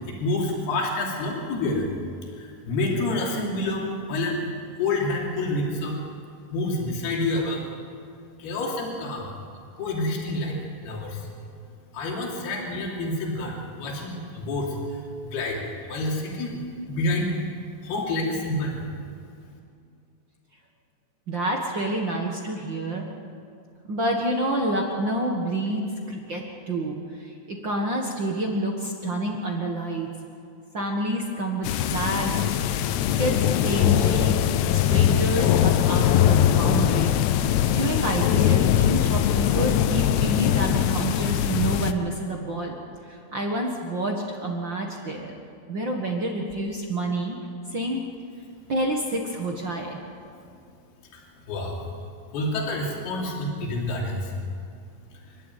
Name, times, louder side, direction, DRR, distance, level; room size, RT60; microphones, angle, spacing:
voice 1, 0.1-1.9 2.4-4.5 4.8-6.0 6.5-7.7 8.4-9.3 9.8-10.6 10.8-11.3 11.9-17.3 17.8-18.8 51.1-51.9 52.3-54.3 55.2-55.3, left 2 dB, 65° left, -2 dB, 4.9 m, -28 dB
voice 2, 21.3-23.0 23.9-30.1 30.7-32.4 33.2-34.4 34.7-37.1 37.7-42.8 43.1-45.3 45.7-47.4 47.7-48.0 48.7-50.0, right 1 dB, 60° right, 0 dB, 1.2 m, -28 dB
sound 1, 31.6-41.9, left 10 dB, 85° left, 2.9 m, -21 dB
27.5 x 12.5 x 9.2 m, 2.4 s
omnidirectional pair, 4.9 m